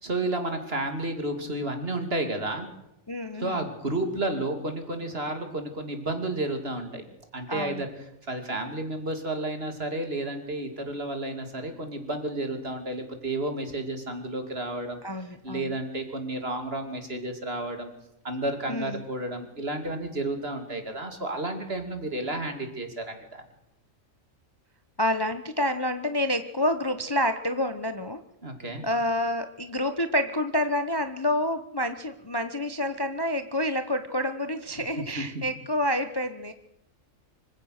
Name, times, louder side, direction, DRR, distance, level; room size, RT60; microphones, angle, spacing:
voice 1, 0.0-2.7 3.4-7.0 7.3-7.9 8.3-15.0 15.4-17.9 18.2-23.4 28.4-28.8 35.1-35.4, right 2 dB, 45° right, 6 dB, 3.0 m, -31 dB
voice 2, 3.1-3.6 7.5-7.8 15.0-15.8 18.7-19.0 25.0-28.2 28.8-36.5, left 1 dB, 20° left, 9 dB, 0.8 m, -28 dB
25.0 x 15.5 x 6.6 m, 0.88 s
omnidirectional pair, 1.4 m